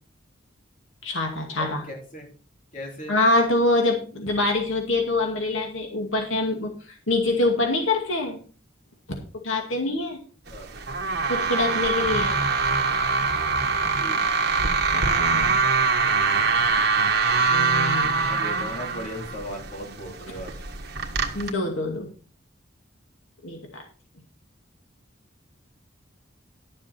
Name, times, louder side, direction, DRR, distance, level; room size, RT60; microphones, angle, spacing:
voice 1, 1.0-1.8 3.1-8.4 9.4-10.2 11.3-12.5 14.9-15.6 17.5-18.2 21.3-22.1 23.4-23.8, left 2 dB, 85° left, 2 dB, 2.3 m, -25 dB
voice 2, 1.6-2.3 2.7-3.1 10.5-10.7 11.7-11.8 13.9-14.3 16.2-16.6 18.3-20.5, equal, 40° left, 0 dB, 3.7 m, -38 dB
sound 1, 10.5-21.5, right 4 dB, 55° right, 1.5 m, -24 dB
12.0 x 7.4 x 4.4 m, 0.39 s
head